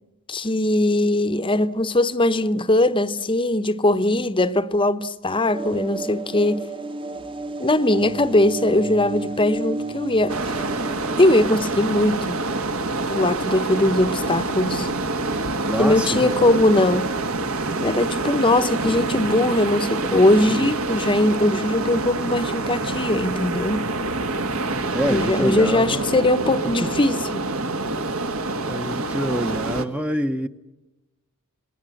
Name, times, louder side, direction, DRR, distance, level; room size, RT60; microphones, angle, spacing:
voice 1, 0.3-6.6 7.6-10.5 11.2-12.4 13.1-14.9 15.8-17.1 17.8-23.9 25.1-27.4, left 1 dB, 20° left, 0.9 m, -20 dB
sound 1, 5.5-13.4, right 3 dB, 25° right, 1.1 m, -33 dB
sound 2, 10.3-29.9, right 2 dB, 65° right, 1.7 m, -26 dB
voice 2, 15.6-16.3 20.5-20.7 24.9-26.1 26.8-26.9 28.7-30.5, equal, 5° right, 0.8 m, -26 dB
28.5 x 20.0 x 7.7 m
head